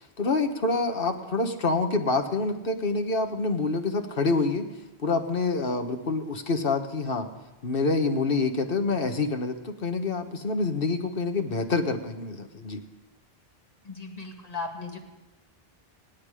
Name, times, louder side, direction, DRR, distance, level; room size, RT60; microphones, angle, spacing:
voice 1, 0.2-4.7 5.0-7.3 7.6-12.8, left 3 dB, 65° left, 5 dB, 1.5 m, -27 dB
voice 2, 13.8-15.0, left 3 dB, 40° left, 1 dB, 2.2 m, -36 dB
26.5 x 9.4 x 5.0 m, 1.0 s
omnidirectional pair, 1.0 m